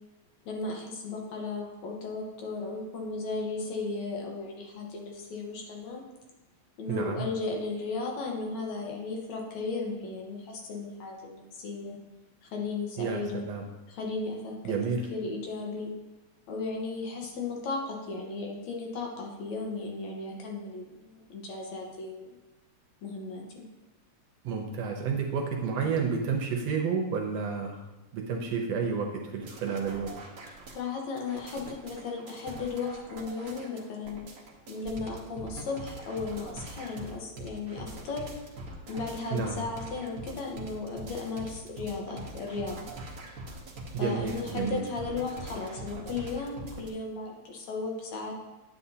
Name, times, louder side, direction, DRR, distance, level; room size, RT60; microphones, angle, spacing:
voice 1, 0.5-6.0 6.8-12.0 12.5-13.4 13.9-14.8 15.1-15.9 16.5-22.3 23.0-23.7 30.7-34.2 34.7-38.3 38.9-42.9 44.0-48.3, left 3 dB, 70° left, 0 dB, 2.4 m, -35 dB
voice 2, 6.9-7.2 13.0-13.6 14.6-15.0 24.4-27.8 28.1-30.1 39.3-39.6 43.9-44.8, right 5 dB, 70° right, 2 dB, 1.7 m, -30 dB
sound 1, 29.4-46.9, right 1 dB, 55° right, 1.0 m, -43 dB
9.5 x 8.3 x 2.8 m, 1.1 s
omnidirectional pair, 3.3 m